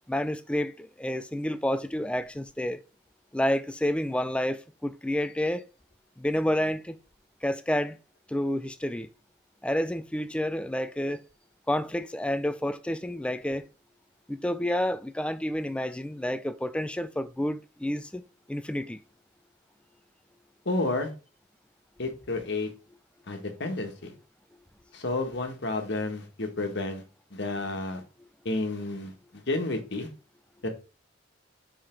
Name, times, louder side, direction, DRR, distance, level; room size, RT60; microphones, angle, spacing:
voice 1, 0.1-2.8 3.3-5.6 6.2-7.0 7.4-8.0 8.3-9.1 9.6-11.2 11.7-13.6 14.3-18.2 18.5-19.0, left 1 dB, 5° left, 0.4 m, -29 dB
voice 2, 20.6-21.1 22.0-22.7 23.3-24.1 24.9-27.0 27.3-28.0 28.4-30.1 30.6-30.7, left 2 dB, 60° left, 1.5 m, -31 dB
5.7 x 4.9 x 4.5 m
head